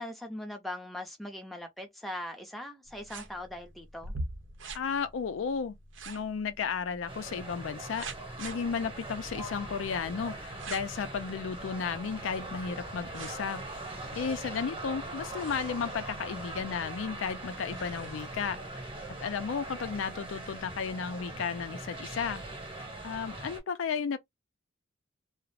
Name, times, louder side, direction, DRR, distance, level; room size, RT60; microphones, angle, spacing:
voice 1, 0.0-4.1, left 1 dB, ahead, 0.5 m, -40 dB
sound 1, 2.9-20.6, right 2 dB, 70° right, 0.7 m, -47 dB
voice 2, 4.7-5.7 6.1-8.0 8.4-13.7 14.2-18.6 19.1-22.4 23.0-24.2, left 6 dB, 75° left, 0.4 m, -34 dB
sound 2, 7.1-23.6, right 2 dB, 25° right, 1.0 m, -41 dB
2.4 x 2.0 x 3.1 m
head